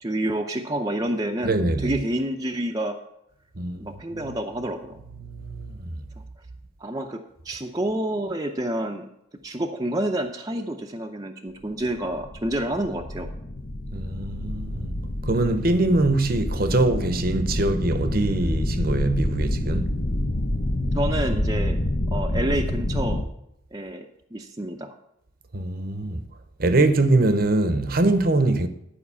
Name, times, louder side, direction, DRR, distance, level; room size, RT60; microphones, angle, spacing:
voice 1, 0.0-3.0 3.8-5.0 6.8-9.1 9.4-13.3 20.9-21.8 22.1-23.2 23.7-24.9, right 1 dB, 20° right, 0.6 m, -28 dB
voice 2, 1.4-2.0 3.6-3.9 4.1-4.3 5.2-5.9 13.9-14.9 15.2-19.9 25.5-26.2 26.6-28.7, right 2 dB, 45° right, 0.8 m, -23 dB
sound 1, 11.8-23.3, left 1 dB, 40° left, 0.7 m, -27 dB
11.0 x 5.1 x 6.8 m
head